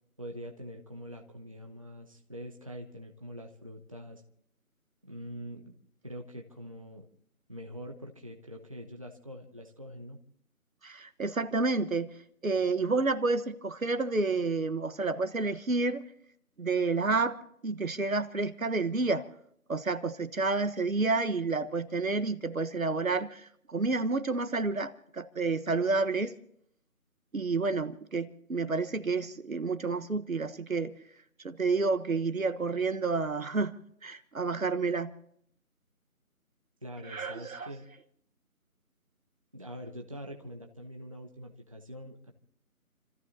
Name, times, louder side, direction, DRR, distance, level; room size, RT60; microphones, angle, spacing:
voice 1, 0.2-4.2 5.0-5.8 6.0-7.1 7.5-10.2 36.8-37.8 39.5-42.3, equal, 25° right, 0.9 m, -44 dB
voice 2, 10.8-12.1 12.4-16.0 16.6-19.3 19.7-26.3 27.3-31.0 31.4-33.7 34.0-35.1 37.1-37.7, right 3 dB, 65° right, 1.3 m, -30 dB
29.5 x 14.5 x 2.8 m
figure-of-eight pair, 165°, 44 cm